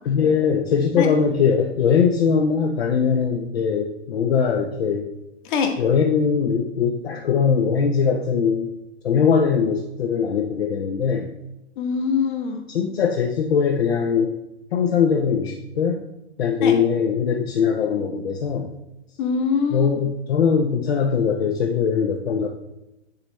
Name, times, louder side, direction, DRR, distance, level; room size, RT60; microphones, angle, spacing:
voice 1, 0.0-5.1 5.8-8.7 9.0-11.3 12.7-14.3 14.7-16.0 16.4-18.7 19.7-22.5, left 6 dB, 65° left, 1 dB, 0.9 m, -21 dB
voice 2, 11.8-12.6 16.6-16.7 19.2-19.9, left 5 dB, 45° left, 5 dB, 1.3 m, -23 dB
9.6 x 4.2 x 3.1 m, 0.88 s
figure-of-eight pair, 115°, 33 cm